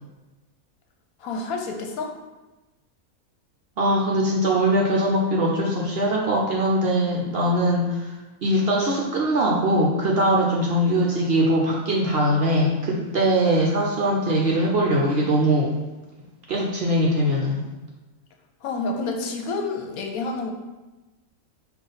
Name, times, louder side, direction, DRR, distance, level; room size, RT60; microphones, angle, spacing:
voice 1, 1.2-2.1 18.6-20.5, left 3 dB, 80° left, 3 dB, 1.1 m, -29 dB
voice 2, 3.8-8.1 8.4-15.7 16.5-17.6, right 1 dB, 60° right, -2 dB, 0.7 m, -21 dB
5.2 x 2.5 x 4.0 m, 1.1 s
omnidirectional pair, 1.5 m